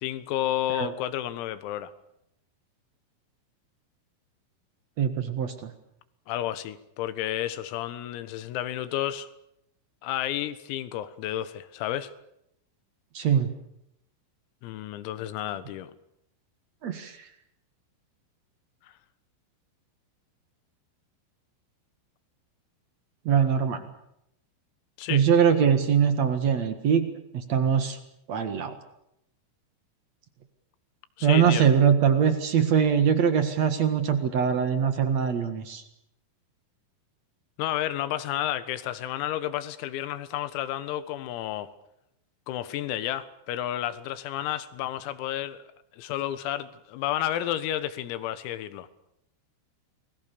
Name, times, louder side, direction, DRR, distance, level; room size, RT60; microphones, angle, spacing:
voice 1, 0.0-1.9 6.3-9.3 10.0-12.1 14.6-15.9 25.0-25.3 31.2-31.7 37.6-41.7 42.5-45.6 45.9-48.9, left 12 dB, 90° left, 13 dB, 4.2 m, -31 dB
voice 2, 5.0-5.7 13.1-13.5 16.8-17.3 23.2-23.8 25.1-27.1 27.3-28.0 28.3-28.7 31.2-35.8, right 7 dB, 70° right, 9 dB, 1.6 m, -22 dB
29.5 x 21.5 x 6.9 m, 0.78 s
omnidirectional pair, 6.0 m